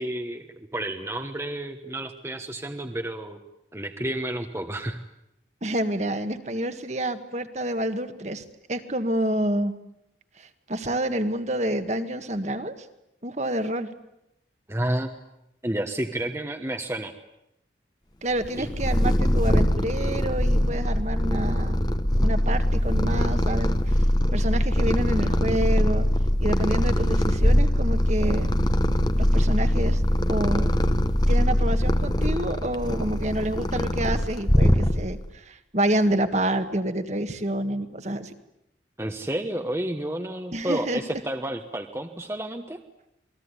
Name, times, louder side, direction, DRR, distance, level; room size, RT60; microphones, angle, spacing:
voice 1, 0.0-3.4 3.7-5.0 14.7-15.1 15.6-17.1 18.6-18.7 39.0-42.8, right 1 dB, 15° right, 5 dB, 1.3 m, -30 dB
voice 2, 5.6-9.8 10.4-12.9 13.2-13.9 18.2-21.8 22.2-24.0 24.3-26.1 26.4-28.5 29.2-30.0 30.3-30.7 31.3-38.3 40.5-41.0, right 1 dB, 40° right, 8 dB, 1.7 m, -28 dB
Purr, 18.4-35.3, equal, 20° left, 1.2 m, -22 dB
28.0 x 20.5 x 9.9 m, 0.85 s
head